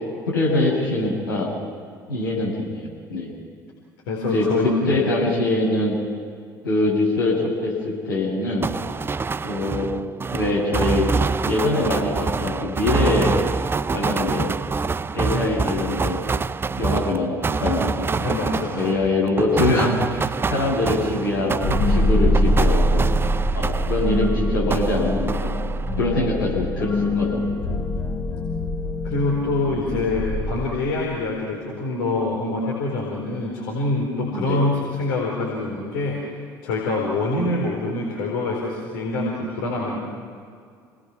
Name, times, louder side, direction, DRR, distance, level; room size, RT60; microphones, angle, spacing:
voice 1, 0.3-1.5 2.1-3.3 4.3-6.0 6.6-8.7 9.4-9.9 10.3-11.1 11.5-13.4 13.9-14.5 15.1-16.2 16.8-18.1 18.7-23.1 23.5-25.5 26.0-27.5 34.3-34.6, left 2 dB, 85° left, -5 dB, 7.0 m, -23 dB
voice 2, 4.1-5.1 18.2-18.8 29.0-36.3 36.6-40.0, left 2 dB, 65° left, -3 dB, 4.3 m, -25 dB
sound 1, 8.6-24.4 24.7-26.1, right 4 dB, 20° right, 0.6 m, -26 dB
sound 2, 21.6-31.3, left 1 dB, 20° left, 3.0 m, -23 dB
28.0 x 19.5 x 6.1 m, 2.2 s
figure-of-eight pair, 60°, 11 cm